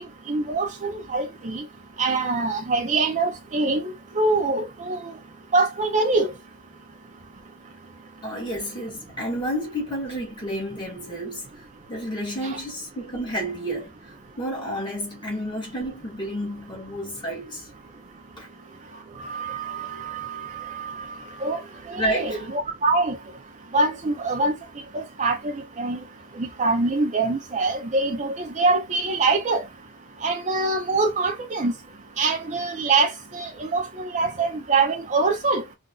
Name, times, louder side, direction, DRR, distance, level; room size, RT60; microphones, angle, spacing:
voice 1, 0.3-1.6 2.0-5.1 5.5-6.3 12.4-12.6 19.2-20.3 20.7-21.6 21.9-23.2 23.7-24.5 24.9-25.4 25.8-26.0 26.4-29.6 30.2-31.7 32.2-35.6, right 3 dB, 35° right, 0.5 m, -24 dB
voice 2, 8.2-11.5 11.9-13.9 14.4-17.7 18.4-18.5 22.0-22.5, equal, 20° left, 1.9 m, -30 dB
3.8 x 2.5 x 2.3 m
head